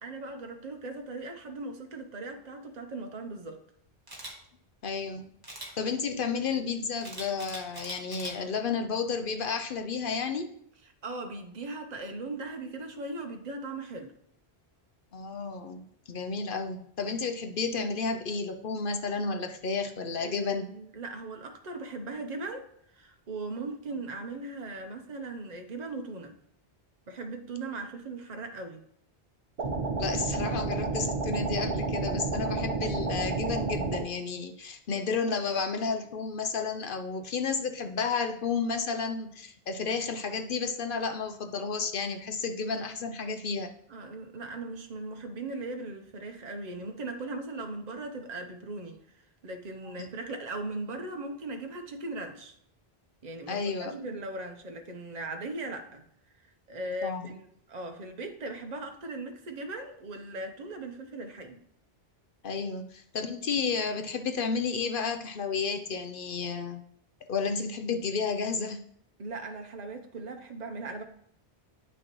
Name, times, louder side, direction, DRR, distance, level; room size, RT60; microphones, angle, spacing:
voice 1, 0.0-3.6 11.0-14.1 20.2-22.7 22.9-26.3 27.1-28.8 43.9-49.0 49.4-52.5 53.2-56.0 56.4-61.6 69.2-71.0, right 2 dB, 45° right, 5 dB, 0.9 m, -38 dB
Camera, 4.1-4.3 5.4-5.7 7.0-8.3 8.8-9.1, right 1 dB, 20° right, 1.4 m, -41 dB
voice 2, 4.8-5.2 5.8-10.5 15.1-20.7 30.0-43.7 49.9-50.1 53.5-53.9 57.0-57.3 62.4-66.9 67.3-68.8, left 5 dB, 60° left, 7 dB, 0.7 m, -32 dB
sound 1, 29.6-34.1, right 3 dB, 75° right, 1.5 m, -30 dB
9.1 x 6.1 x 3.0 m, 0.68 s
omnidirectional pair, 1.1 m